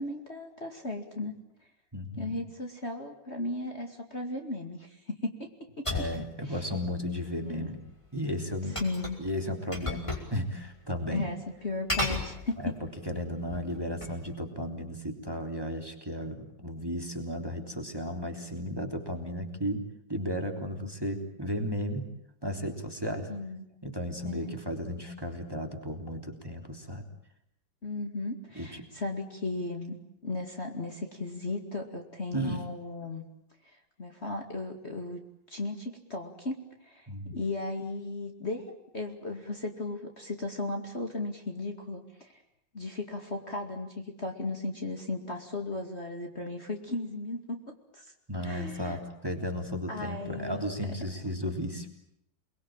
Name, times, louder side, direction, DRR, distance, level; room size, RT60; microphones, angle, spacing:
voice 1, 0.0-1.4 2.2-5.5 5.8-6.1 6.4-6.6 7.4-7.7 8.8-9.2 11.1-11.4 11.6-12.8 23.3-23.6 24.2-24.5 27.8-30.0 30.2-33.2 33.6-35.2 35.5-42.4 42.7-48.1 48.4-49.0 49.9-50.7, left 2 dB, 35° left, 3 dB, 2.6 m, -36 dB
voice 2, 1.9-2.3 5.9-7.8 8.1-8.8 9.2-11.3 12.6-12.7 13.0-19.8 20.1-22.0 22.4-23.3 23.8-27.0 28.5-28.8 32.3-32.6 37.1-37.3 48.3-51.9, equal, 10° right, 4 dB, 3.3 m, -34 dB
sound 1, 5.8-6.2 8.8-9.3 9.7-10.3 10.6-10.7 11.9-12.8 13.4-14.2, left 2 dB, 15° left, 5.3 m, -33 dB
29.0 x 21.5 x 8.9 m, 0.74 s
omnidirectional pair, 2.1 m